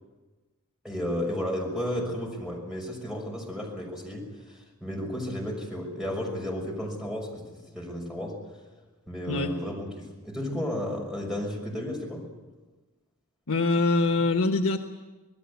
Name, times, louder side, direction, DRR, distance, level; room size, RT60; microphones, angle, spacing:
voice 1, 0.8-8.4 9.1-12.2, left 1 dB, 5° right, 0 dB, 6.0 m, -33 dB
voice 2, 13.5-14.8, left 3 dB, 80° left, 5 dB, 1.2 m, -24 dB
26.5 x 19.5 x 8.3 m, 1.3 s
head